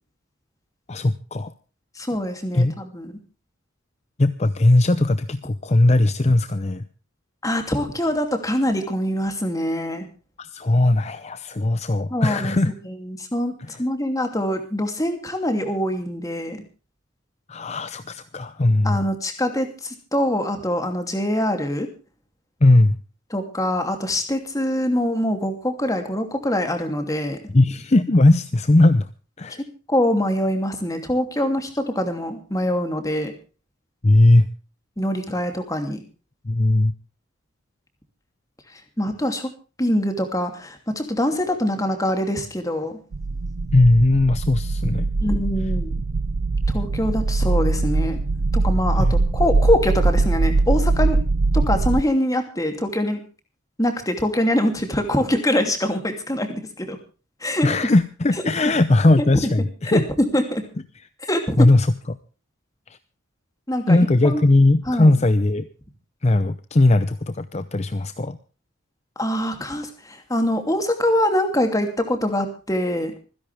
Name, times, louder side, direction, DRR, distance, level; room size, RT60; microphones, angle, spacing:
voice 1, 0.9-1.5 2.5-2.7 4.2-6.8 10.4-12.7 13.7-13.8 17.5-19.0 22.6-23.0 27.5-29.1 29.4-29.6 34.0-34.5 36.5-36.9 43.7-45.1 48.9-49.1 57.6-60.0 61.6-62.2 63.9-65.7 66.2-68.4, left 2 dB, 35° left, 12 dB, 0.7 m, -18 dB
voice 2, 2.0-3.1 7.4-10.1 12.1-12.5 12.8-16.6 18.8-21.9 23.3-27.4 29.6-33.3 35.0-36.0 39.0-39.5 39.8-43.0 45.2-45.9 46.7-48.2 48.5-51.2 51.5-53.2 53.8-57.0 57.4-57.7 59.2-59.3 59.8-60.6 61.2-61.7 63.7-64.4 64.9-65.1 69.2-73.1, left 1 dB, 15° left, 6 dB, 2.7 m, -24 dB
sound 1, 43.1-52.0, right 3 dB, 80° right, 0.6 m, -21 dB
25.5 x 10.5 x 3.4 m, 0.36 s
head